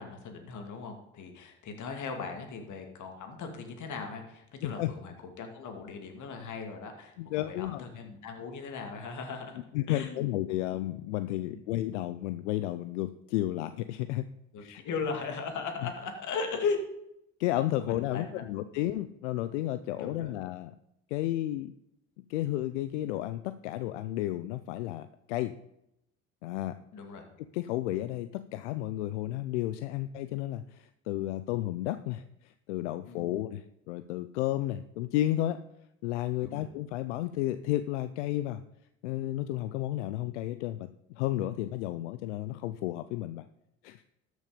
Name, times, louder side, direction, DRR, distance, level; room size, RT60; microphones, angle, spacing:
voice 1, 0.0-9.6 9.9-10.3 11.5-11.6 14.5-16.8 17.8-18.4 20.0-20.4 26.9-27.3 33.1-33.3 36.4-36.6, left 5 dB, 60° left, 4 dB, 2.5 m, -38 dB
voice 2, 4.6-4.9 7.2-7.8 9.7-14.2 14.6-14.8 15.8-15.9 17.4-20.7 21.1-21.7 22.3-25.5 26.4-26.8 27.5-35.6 36.0-38.6 39.0-43.4 43.8-44.0, left 14 dB, 90° left, 12 dB, 0.5 m, -32 dB
13.0 x 6.4 x 5.1 m, 0.80 s
hypercardioid pair, 65°, 34 cm